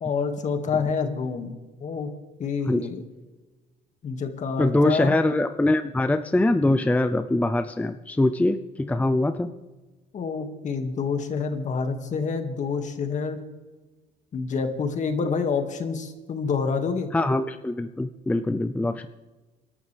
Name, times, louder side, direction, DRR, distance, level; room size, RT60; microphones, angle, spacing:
voice 1, 0.0-1.6 1.8-2.1 2.4-3.1 4.0-5.2 10.1-13.4 14.3-17.1, left 5 dB, 45° left, 6 dB, 2.1 m, -27 dB
voice 2, 4.6-9.5 17.1-19.1, left 2 dB, 10° left, 9 dB, 0.6 m, -23 dB
29.0 x 12.0 x 3.5 m, 1.2 s
cardioid pair, 110°, 17 cm